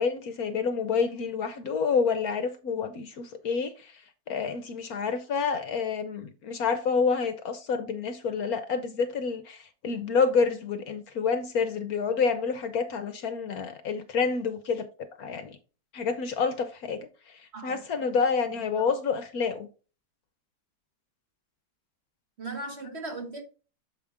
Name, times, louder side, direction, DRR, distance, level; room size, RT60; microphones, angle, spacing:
voice 1, 0.0-3.9 4.3-14.9 15.2-15.6 15.9-17.1 17.6-19.7, left 5 dB, 65° left, 1.1 m, -28 dB
voice 2, 22.4-23.4, right 2 dB, 40° right, 1.3 m, -37 dB
7.2 x 4.9 x 3.5 m
omnidirectional pair, 1.9 m